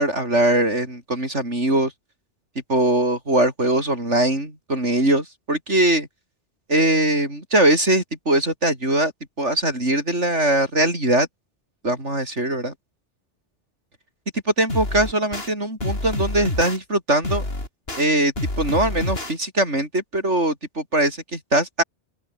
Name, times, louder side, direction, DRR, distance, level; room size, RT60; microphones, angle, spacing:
voice 1, 0.0-1.9 2.7-6.1 6.7-9.1 9.4-11.3 11.8-12.7 14.6-17.4 18.0-21.8, right 1 dB, 90° right, 8.5 m, -21 dB
sound 1, 14.7-15.5 15.8-16.8 17.2-18.0 18.4-19.3, left 1 dB, 60° left, 5.8 m, -27 dB
open air
omnidirectional pair, 1.2 m